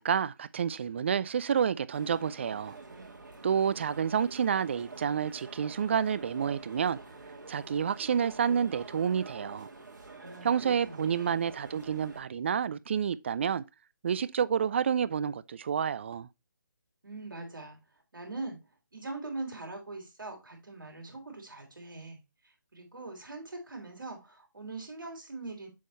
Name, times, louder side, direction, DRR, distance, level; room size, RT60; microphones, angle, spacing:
voice 1, 0.0-2.8 3.4-7.0 7.5-9.7 10.4-13.6 14.0-16.3, right 7 dB, 35° right, 0.3 m, -29 dB
sound 1, 1.9-12.2, right 3 dB, 65° right, 2.6 m, -47 dB
voice 2, 10.2-11.5 17.0-17.8 18.1-18.6 18.9-22.2 22.4-25.7, right 3 dB, 80° right, 3.0 m, -42 dB
7.5 x 3.7 x 4.1 m
figure-of-eight pair, 155°, 11 cm